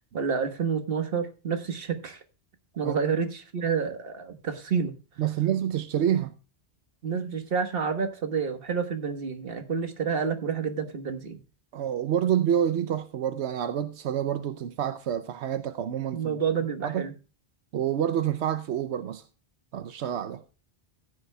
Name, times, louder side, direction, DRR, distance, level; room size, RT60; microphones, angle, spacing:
voice 1, 0.0-2.2 2.8-4.9 7.0-11.4 16.1-17.1, right 6 dB, 60° right, 1.5 m, -29 dB
voice 2, 5.2-6.3 11.7-16.4 16.8-17.1 17.7-19.2 19.7-20.4, right 10 dB, 85° right, 1.0 m, -28 dB
15.5 x 9.8 x 2.2 m
omnidirectional pair, 1.1 m